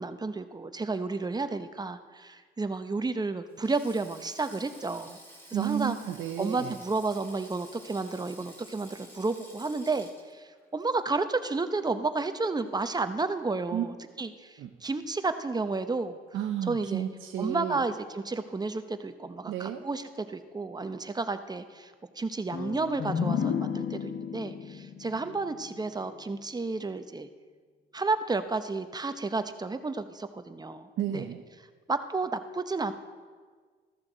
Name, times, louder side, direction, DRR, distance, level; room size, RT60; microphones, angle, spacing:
voice 1, 0.0-5.2 5.5-6.0 6.4-16.2 16.6-17.1 17.4-27.3 27.9-31.3 31.9-32.9, right 3 dB, 20° right, 10 dB, 0.8 m, -32 dB
Sink (filling or washing), 3.5-12.0 12.2-12.5 13.6-13.9, equal, 10° left, 3.6 m, -52 dB
voice 2, 5.5-6.7 13.7-13.9 14.6-14.7 16.3-17.8 19.5-19.8 31.0-31.4, right 11 dB, 80° right, 2 dB, 0.8 m, -32 dB
sound 1, 22.5-26.2, left 7 dB, 75° left, 1.2 m, -33 dB
14.0 x 13.5 x 3.9 m, 1.5 s
cardioid pair, 90°, 20 cm